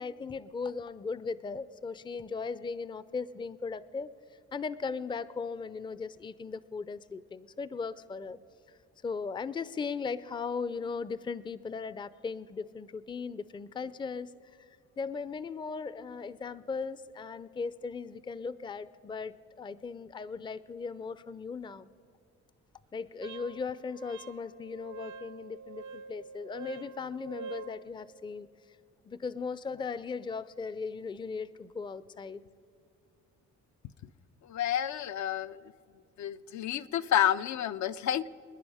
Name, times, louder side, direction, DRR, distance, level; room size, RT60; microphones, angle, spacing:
voice 1, 0.0-4.1 4.5-8.4 9.0-14.3 15.0-21.9 22.9-28.5 29.0-32.4, left 5 dB, 15° left, 17 dB, 0.4 m, -38 dB
Wind instrument woodwind instrument, 23.2-27.8, right 5 dB, 80° right, 0.7 m, -46 dB
voice 2, 34.4-35.6 36.2-38.3, left 10 dB, 70° left, 12 dB, 0.5 m, -29 dB
26.0 x 10.0 x 4.9 m, 2.4 s
cardioid pair, 90°, 30 cm